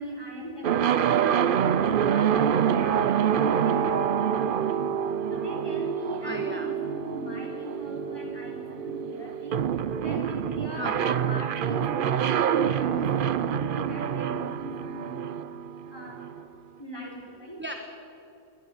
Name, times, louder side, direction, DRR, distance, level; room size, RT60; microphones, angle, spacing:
voice 1, 0.0-4.9 5.3-9.6 10.0-15.2 15.9-16.2 16.8-17.6, equal, 15° left, -2 dB, 4.6 m, -39 dB
sound 1, 0.6-16.4, right 8 dB, 55° right, 0.6 m, -26 dB
voice 2, 6.2-6.7 10.8-11.1 17.6-17.7, right 1 dB, 10° right, 4 dB, 1.1 m, -35 dB
22.5 x 11.5 x 10.0 m, 2.9 s
omnidirectional pair, 1.4 m